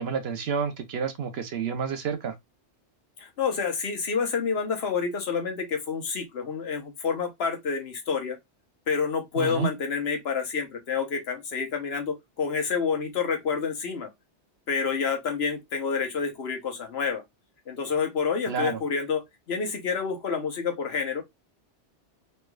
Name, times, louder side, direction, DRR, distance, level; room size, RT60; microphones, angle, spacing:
voice 1, 0.0-2.3 9.4-9.7 18.5-18.8, right 6 dB, 65° right, 0.9 m, -29 dB
voice 2, 3.2-8.4 8.9-14.1 14.7-17.2 17.7-21.2, left 5 dB, 65° left, 1.1 m, -28 dB
3.2 x 3.2 x 2.3 m
omnidirectional pair, 1.2 m